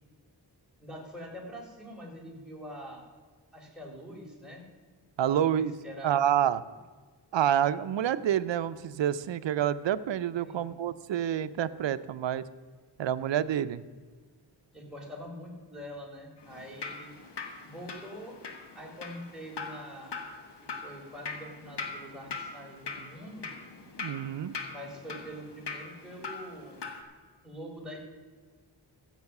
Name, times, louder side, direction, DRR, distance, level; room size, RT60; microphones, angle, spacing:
voice 1, 0.8-3.0 3.5-4.7 5.3-6.2 10.4-10.8 14.7-17.2 17.6-18.4 18.7-20.2 20.6-23.5 24.7-26.8 27.4-28.0, equal, ahead, -2 dB, 4.2 m, -44 dB
voice 2, 5.2-5.7 6.0-6.6 7.3-12.4 13.0-13.8 24.0-24.5, right 10 dB, 80° right, 14 dB, 0.7 m, -28 dB
Drip, 16.4-27.0, left 4 dB, 70° left, 1.6 m, -41 dB
15.0 x 7.5 x 6.0 m, 1.5 s
wide cardioid pair, 80°, 43 cm